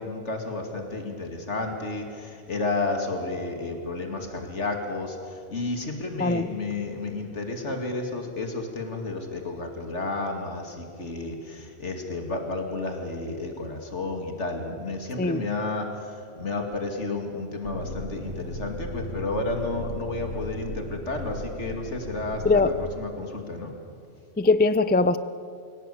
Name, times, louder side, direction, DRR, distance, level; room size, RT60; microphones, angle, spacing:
voice 1, 0.0-23.7, left 3 dB, 75° left, 3 dB, 2.7 m, -31 dB
sound 1, 17.6-22.9, equal, 80° right, 2.5 m, -36 dB
voice 2, 24.4-25.2, left 3 dB, 15° left, 13 dB, 0.3 m, -21 dB
25.0 x 17.0 x 8.4 m, 2.4 s
omnidirectional pair, 1.2 m